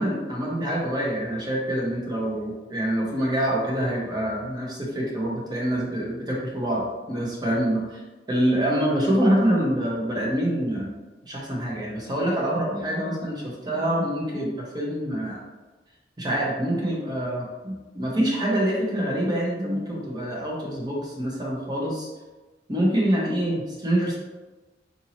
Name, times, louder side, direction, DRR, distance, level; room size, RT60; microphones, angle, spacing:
voice 1, 0.0-8.0 8.3-10.9 11.2-15.4 16.2-22.1 22.7-24.2, right 1 dB, 25° right, -3 dB, 0.8 m, -26 dB
3.9 x 2.7 x 2.9 m, 1.2 s
head